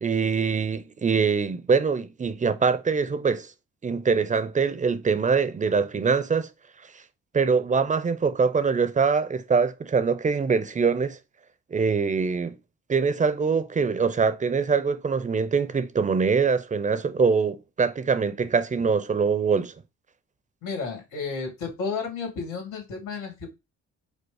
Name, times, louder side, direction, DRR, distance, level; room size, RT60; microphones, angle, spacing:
voice 1, 0.0-3.5 3.8-6.5 7.3-11.2 11.7-12.6 12.9-19.7, right 5 dB, 25° right, 0.6 m, -23 dB
voice 2, 20.6-23.5, left 4 dB, 85° left, 1.9 m, -32 dB
5.1 x 2.0 x 4.7 m
cardioid pair, 90°, 30 cm